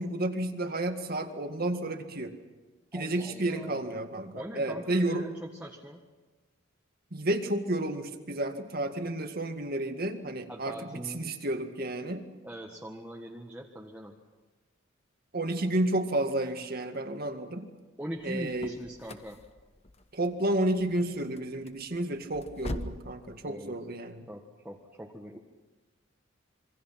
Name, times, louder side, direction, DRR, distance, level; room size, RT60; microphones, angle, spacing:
voice 1, 0.0-2.3 2.9-5.3 7.1-12.3 15.3-17.7 18.2-18.7 20.1-24.3, right 1 dB, 50° right, 6 dB, 2.0 m, -31 dB
voice 2, 2.9-3.9 4.3-6.0 10.5-11.2 12.4-14.2 18.0-19.4 23.4-23.8 24.3-25.4, equal, 10° right, -1 dB, 1.6 m, -42 dB
sound 1, 18.1-23.1, left 1 dB, 30° left, 1.1 m, -42 dB
27.0 x 24.0 x 5.9 m, 1.2 s
head